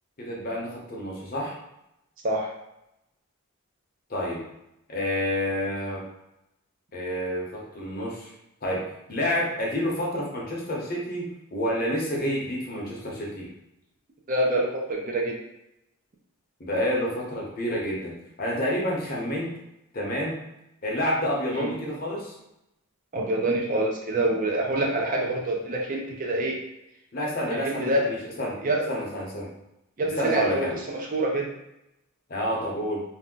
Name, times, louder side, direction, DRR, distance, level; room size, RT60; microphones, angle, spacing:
voice 1, 0.2-1.5 4.1-4.4 4.9-6.0 6.9-8.3 8.6-13.5 16.6-19.5 19.9-20.4 20.8-22.3 27.1-28.6 28.9-29.5 30.2-30.7 32.3-33.0, equal, 45° left, -3 dB, 0.8 m, -29 dB
voice 2, 14.3-15.4 21.5-21.7 23.1-26.6 27.5-28.1 28.6-28.9 30.0-31.5, right 1 dB, 40° right, -1 dB, 0.5 m, -26 dB
2.6 x 2.1 x 3.7 m, 0.86 s
head